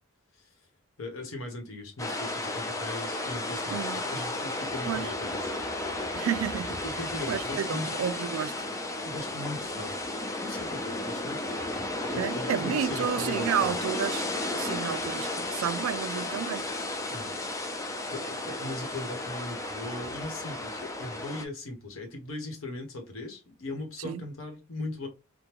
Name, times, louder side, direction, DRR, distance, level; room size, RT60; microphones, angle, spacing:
voice 1, 1.0-5.9 6.8-7.9 9.0-9.9 10.4-11.6 12.1-13.7 17.1-17.3 18.1-25.1, left 2 dB, 70° left, 1.1 m, -39 dB
sound 1, 2.0-21.4, left 2 dB, 15° left, 0.4 m, -33 dB
voice 2, 3.7-4.0 4.8-5.1 6.1-6.8 7.3-8.6 12.2-14.3 14.5-16.7 24.0-24.2, right 8 dB, 70° right, 0.3 m, -31 dB
3.5 x 2.2 x 2.9 m
head